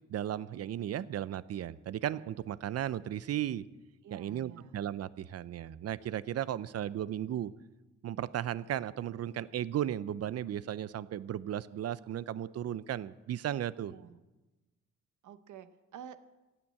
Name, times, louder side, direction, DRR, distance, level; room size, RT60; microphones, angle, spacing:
voice 1, 0.1-3.7 4.1-7.5 8.0-13.9, right 11 dB, 55° right, 18 dB, 0.6 m, -35 dB
voice 2, 4.0-4.7 13.8-14.2 15.2-16.3, right 9 dB, 80° right, 12 dB, 1.0 m, -50 dB
16.0 x 9.0 x 8.6 m, 1.1 s
cardioid pair, 140°, 30 cm